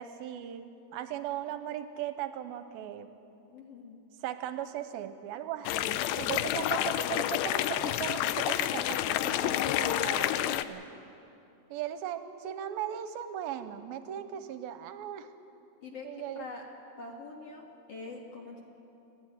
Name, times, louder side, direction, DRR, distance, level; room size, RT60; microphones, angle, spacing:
voice 1, 0.0-3.1 4.2-10.9 11.7-15.3 16.0-16.5, right 11 dB, 80° right, 10 dB, 2.4 m, -38 dB
voice 2, 3.5-4.0 15.8-16.1 16.4-16.6 17.0-18.6, left 3 dB, 50° left, 0 dB, 2.2 m, -44 dB
sound 1, 5.7-10.6, left 13 dB, 80° left, 2.4 m, -29 dB
30.0 x 11.0 x 9.3 m, 2.8 s
omnidirectional pair, 4.5 m